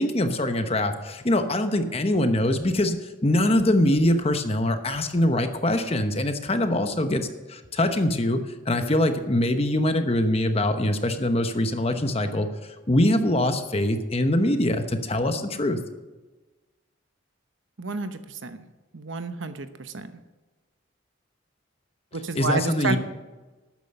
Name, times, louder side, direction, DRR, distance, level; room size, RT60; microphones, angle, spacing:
voice 1, 0.0-8.4 8.7-12.5 12.9-15.8 22.3-23.0, left 1 dB, 30° left, 7 dB, 1.0 m, -23 dB
voice 2, 17.8-18.6 18.9-20.1 22.1-23.0, right 3 dB, 70° right, 9 dB, 0.9 m, -30 dB
12.5 x 9.1 x 5.4 m, 1.2 s
head